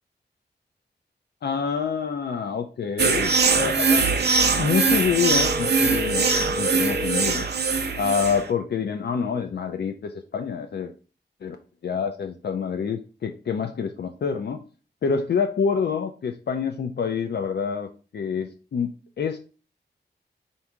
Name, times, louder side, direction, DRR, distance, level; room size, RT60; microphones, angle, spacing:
voice 1, 1.4-4.1 4.6-7.5 8.0-10.9 11.4-11.6 11.8-14.6 15.0-18.9 19.2-19.4, left 6 dB, 65° left, 5 dB, 0.4 m, -27 dB
sound 1, 3.0-8.5, right 4 dB, 65° right, 0.6 m, -22 dB
sound 2, 5.3-7.4, left 1 dB, 20° right, 0.4 m, -30 dB
3.6 x 2.6 x 4.5 m, 0.36 s
cardioid pair, 60°, 19 cm